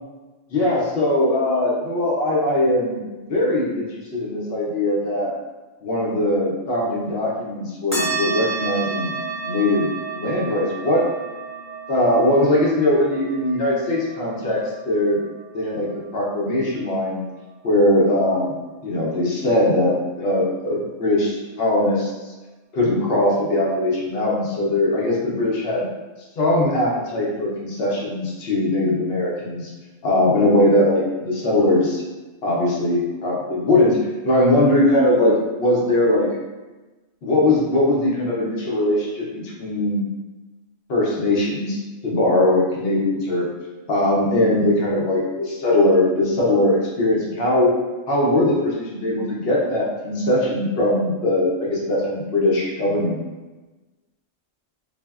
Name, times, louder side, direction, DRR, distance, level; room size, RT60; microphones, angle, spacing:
voice 1, 0.5-5.3 5.8-9.1 9.4-11.1 11.9-14.6 14.9-15.2 15.5-17.2 17.6-18.6 18.8-22.1 22.7-25.8 26.4-29.7 30.0-32.0 32.4-36.3 37.2-40.0 40.9-43.5 43.9-47.8 48.1-53.2, left 1 dB, 60° left, -4 dB, 0.7 m, -20 dB
sound 1, 7.9-16.8, right 4 dB, 5° right, 0.9 m, -32 dB
3.3 x 2.0 x 2.3 m, 1.2 s
omnidirectional pair, 1.3 m